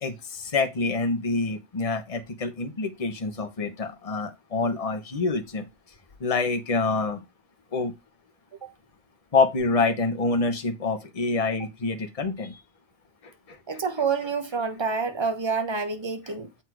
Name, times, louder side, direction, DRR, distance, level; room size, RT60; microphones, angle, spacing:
voice 1, 0.0-5.7 6.2-7.2 7.7-7.9 9.3-12.6 13.5-13.6, left 3 dB, 35° left, 1.1 m, -26 dB
voice 2, 13.7-16.5, right 5 dB, 30° right, 0.9 m, -28 dB
7.7 x 4.4 x 4.7 m
omnidirectional pair, 1.1 m